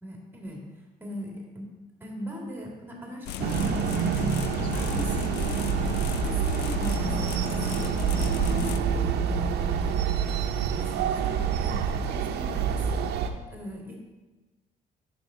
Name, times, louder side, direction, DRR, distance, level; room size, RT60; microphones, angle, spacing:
voice 1, 0.0-0.6 1.0-1.7 2.0-5.6 6.0-10.4 10.7-13.1 13.5-14.0, equal, 10° right, -1 dB, 2.1 m, -39 dB
sound 1, 3.3-8.8, left 11 dB, 80° left, 0.4 m, -34 dB
sound 2, 3.4-13.3, right 7 dB, 75° right, 0.7 m, -27 dB
8.9 x 6.6 x 3.8 m, 1.2 s
cardioid pair, 110°, 17 cm